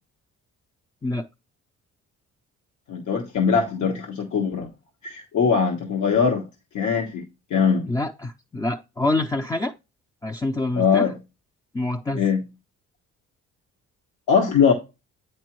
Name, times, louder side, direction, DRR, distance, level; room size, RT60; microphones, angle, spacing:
voice 1, 2.9-4.7 5.0-6.4 6.7-7.2 7.5-7.9 10.8-11.2 12.1-12.4 14.3-14.7, left 6 dB, 80° left, 1.2 m, -21 dB
voice 2, 7.9-9.7 10.2-11.1 11.7-12.2, left 2 dB, 10° left, 0.4 m, -26 dB
8.4 x 5.2 x 3.0 m
cardioid pair, 90°, 30 cm